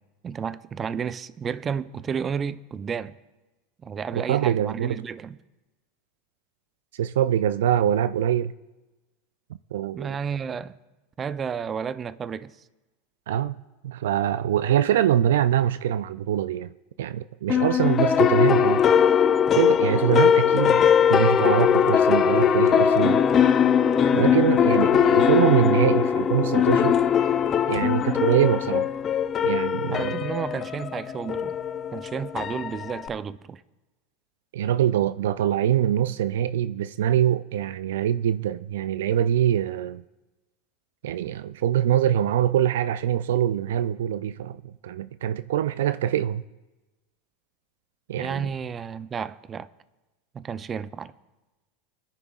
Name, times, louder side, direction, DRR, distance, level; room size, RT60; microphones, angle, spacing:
voice 1, 0.2-3.1 3.8-5.4 9.9-10.8 11.2-12.5 29.9-31.5 31.9-33.6 48.2-49.7 50.3-51.1, right 7 dB, 25° right, 0.5 m, -32 dB
voice 2, 4.1-5.0 7.0-8.5 9.7-10.2 13.3-13.6 13.8-16.7 17.0-18.8 19.5-23.2 24.1-27.0 27.7-28.9 29.4-30.3 34.5-40.0 41.0-46.4 48.1-48.5, right 10 dB, 85° right, 0.3 m, -24 dB
sound 1, 17.5-33.1, left 8 dB, 35° left, 0.5 m, -21 dB
25.5 x 10.0 x 2.4 m
supercardioid pair, 110°, 0 cm